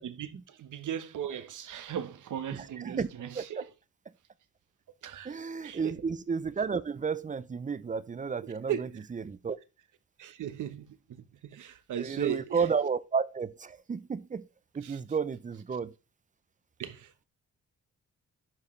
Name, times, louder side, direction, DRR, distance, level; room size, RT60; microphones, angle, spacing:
voice 1, 0.0-3.7 5.0-5.3 5.6-5.9 8.7-8.9 10.2-12.4 14.8-14.9 16.8-17.2, right 9 dB, 70° right, 1.1 m, -37 dB
voice 2, 2.5-3.1 3.3-3.6 4.1-4.2 5.2-9.6 12.0-14.5 14.7-15.9, right 5 dB, 25° right, 0.5 m, -32 dB
11.5 x 4.6 x 3.2 m
cardioid pair, 90°, 32 cm